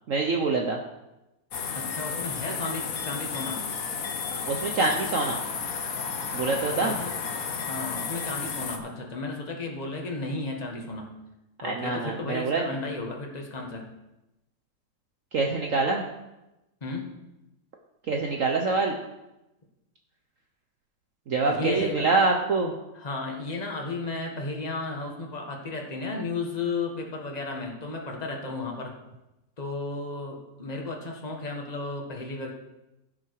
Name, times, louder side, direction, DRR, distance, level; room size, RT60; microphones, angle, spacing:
voice 1, 0.1-0.8 4.5-5.4 6.3-7.0 11.6-12.7 15.3-16.0 18.1-18.9 21.3-22.7, right 3 dB, 50° right, 1 dB, 1.2 m, -25 dB
sound 1, 1.5-8.8, left 6 dB, 55° left, 1.4 m, -32 dB
voice 2, 1.7-3.6 6.6-7.2 7.6-11.1 11.6-13.9 16.8-17.1 21.5-22.1 22.9-28.9 29.6-32.5, left 2 dB, 25° left, 1 dB, 1.7 m, -33 dB
16.0 x 6.4 x 4.8 m, 0.96 s
omnidirectional pair, 1.9 m